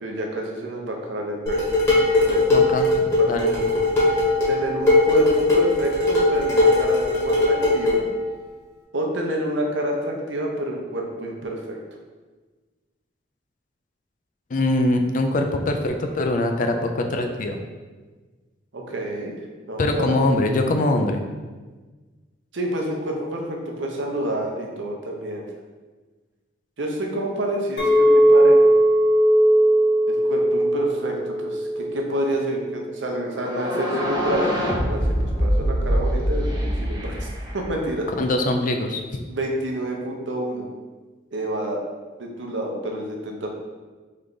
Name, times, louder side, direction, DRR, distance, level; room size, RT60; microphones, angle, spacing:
voice 1, 0.0-1.6 2.2-2.6 3.2-3.7 4.1-8.0 8.9-11.8 18.7-19.3 19.7-20.2 22.5-25.4 26.8-28.6 30.1-37.3 37.5-38.1 39.3-40.7 41.3-41.8 42.2-43.5, right 1 dB, 75° right, 0 dB, 0.7 m, -28 dB
Dishes pots and pans, 1.5-8.1, left 2 dB, 15° left, 1.1 m, -19 dB
voice 2, 2.5-3.0 3.3-3.5 14.5-17.6 19.8-21.2 38.2-39.0, left 2 dB, 45° left, 4 dB, 0.4 m, -22 dB
Chink clink, 27.8-32.1 32.5-32.9, right 1 dB, 65° left, 1.0 m, -18 dB
sound 1, 33.4-38.2, equal, 20° right, 0.7 m, -24 dB
3.3 x 3.2 x 3.9 m, 1.3 s
head